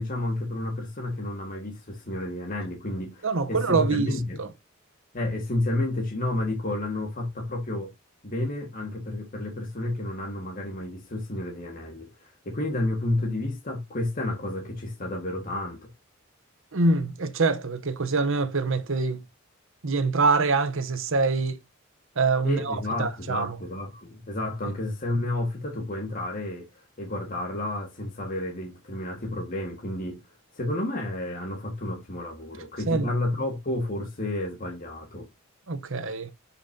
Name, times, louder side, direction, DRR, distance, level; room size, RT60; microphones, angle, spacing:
voice 1, 0.0-4.4 5.1-7.9 8.2-15.9 22.4-30.2 30.5-35.3, left 1 dB, 40° left, 1.7 m, -31 dB
voice 2, 3.2-4.5 16.7-19.2 19.8-21.6 22.2-23.6 32.9-33.1 35.7-36.3, right 3 dB, 65° right, 0.9 m, -25 dB
10.5 x 5.7 x 2.8 m
head